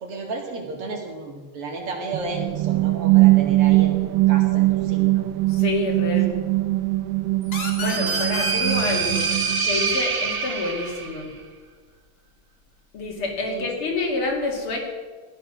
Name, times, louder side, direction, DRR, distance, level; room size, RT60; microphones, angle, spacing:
voice 1, 0.0-3.9 4.3-5.3 13.5-13.7, right 3 dB, 90° right, 1 dB, 3.1 m, -33 dB
sound 1, 2.1-9.9, right 19 dB, 70° right, 1.2 m, -21 dB
voice 2, 5.5-6.4 7.8-9.3 9.6-11.3 12.9-14.8, left 3 dB, 75° left, 0 dB, 3.2 m, -27 dB
sound 2, 7.5-10.9, left 2 dB, 45° left, 2.4 m, -33 dB
sound 3, 7.5-11.2, right 5 dB, 40° right, 0.8 m, -26 dB
15.0 x 10.5 x 6.2 m, 1.4 s
omnidirectional pair, 2.4 m